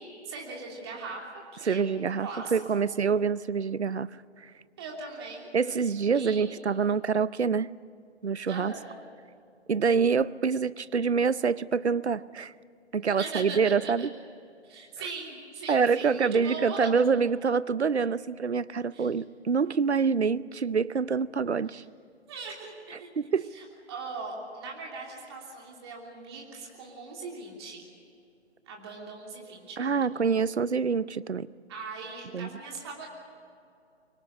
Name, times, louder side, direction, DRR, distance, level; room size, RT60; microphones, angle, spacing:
voice 1, 0.0-1.9 2.2-2.6 4.8-5.5 6.1-6.6 8.5-8.9 13.1-14.1 14.6-16.9 18.9-19.1 21.7-21.8 22.3-23.1 23.5-27.9 28.7-30.4 31.7-33.1, right 3 dB, 25° right, -2 dB, 3.1 m, -40 dB
voice 2, 1.6-4.1 4.4-4.5 5.5-7.7 8.2-8.7 9.7-12.5 12.9-14.1 15.7-21.8 23.2-23.5 29.8-31.5 32.3-32.5, right 5 dB, 70° right, 19 dB, 0.7 m, -26 dB
25.0 x 18.0 x 8.6 m, 2.5 s
figure-of-eight pair, 145°, 35 cm